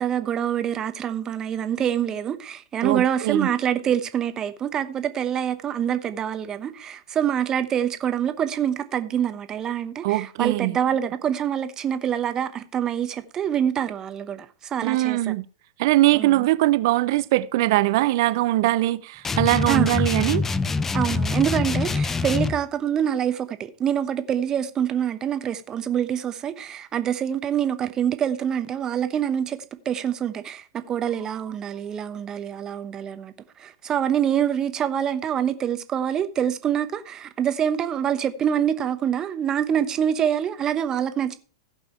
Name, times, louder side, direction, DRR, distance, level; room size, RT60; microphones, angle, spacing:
voice 1, 0.0-15.3 16.1-16.5 19.7-19.9 20.9-29.6 29.8-41.3, right 9 dB, 25° right, 1.0 m, -25 dB
voice 2, 2.8-3.5 10.0-10.8 14.8-15.4 15.8-20.4, right 17 dB, 55° right, 0.6 m, -21 dB
sound 1, 19.2-22.6, left 4 dB, 15° left, 0.5 m, -25 dB
15.5 x 5.5 x 4.5 m
figure-of-eight pair, 100°, 2 cm